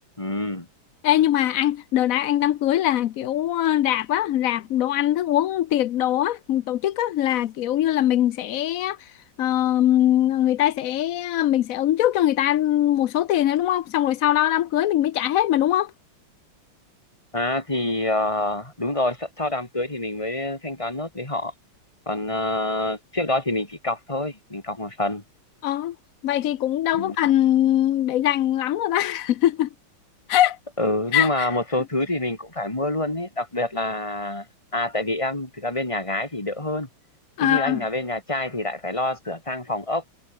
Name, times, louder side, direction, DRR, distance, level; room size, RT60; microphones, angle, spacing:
voice 1, 0.2-0.7 17.3-21.5 22.0-25.2 26.9-27.2 30.8-34.5 34.7-36.9 37.4-40.0, left 2 dB, 15° left, 3.5 m, -27 dB
voice 2, 1.0-9.0 9.4-15.9 25.6-26.0 26.2-29.7 30.3-30.6 31.1-31.5 37.4-37.8, left 12 dB, 85° left, 0.7 m, -22 dB
omnidirectional pair, 2.2 m